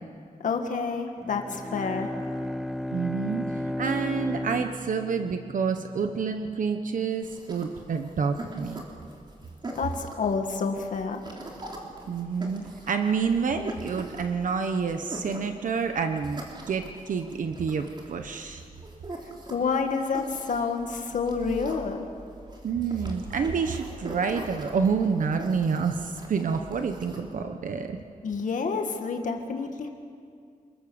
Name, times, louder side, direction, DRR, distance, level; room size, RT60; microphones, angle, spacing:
voice 1, 0.4-2.1 9.8-11.2 19.5-22.1 28.2-29.9, left 5 dB, 65° left, 4 dB, 1.7 m, -29 dB
Bowed string instrument, 1.2-6.0, left 1 dB, ahead, 0.8 m, -34 dB
voice 2, 2.9-8.8 12.1-18.6 22.6-28.0, right 5 dB, 65° right, 6 dB, 1.1 m, -28 dB
sound 1, 7.2-27.2, right 1 dB, 30° right, 3.4 m, -43 dB
28.0 x 21.5 x 7.1 m, 2.2 s
wide cardioid pair, 170°, 14 cm